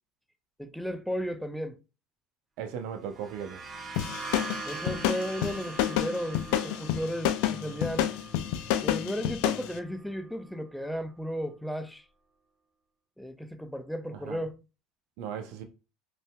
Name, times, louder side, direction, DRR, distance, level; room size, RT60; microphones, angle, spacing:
voice 1, 0.6-1.8 4.7-8.1 8.8-12.0 13.2-14.6, equal, ahead, 0.5 m, -34 dB
voice 2, 2.6-3.6 14.2-14.4 15.2-15.6, right 8 dB, 70° right, 0.6 m, -37 dB
sound 1, 3.0-10.6, right 4 dB, 40° right, 1.0 m, -43 dB
sound 2, 4.0-9.7, left 12 dB, 75° left, 0.3 m, -29 dB
3.2 x 2.6 x 2.2 m
hypercardioid pair, 85°, 0 cm